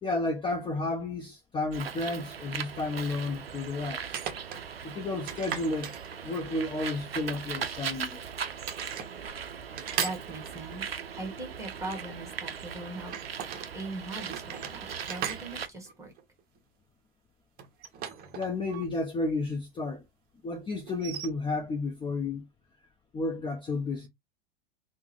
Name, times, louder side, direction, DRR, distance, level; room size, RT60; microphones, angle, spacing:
voice 1, 0.0-4.1 4.8-5.9 6.2-8.2 18.3-20.0 20.4-22.4 23.1-24.1, left 2 dB, 15° left, 0.6 m, -32 dB
Bird, 1.7-15.7, right 7 dB, 90° right, 0.5 m, -39 dB
sound 1, 1.9-2.0 4.0-4.6 5.3-6.6 7.5-8.3 8.6-9.1 9.8-10.9 13.0-13.7 14.1-16.6 17.6-18.9 19.1-19.2 20.9-21.3, right 8 dB, 30° right, 0.7 m, -38 dB
voice 2, 10.0-10.8 11.2-13.2 13.7-16.1, right 2 dB, 10° right, 1.3 m, -40 dB
3.5 x 2.1 x 3.0 m
figure-of-eight pair, 90°, 29 cm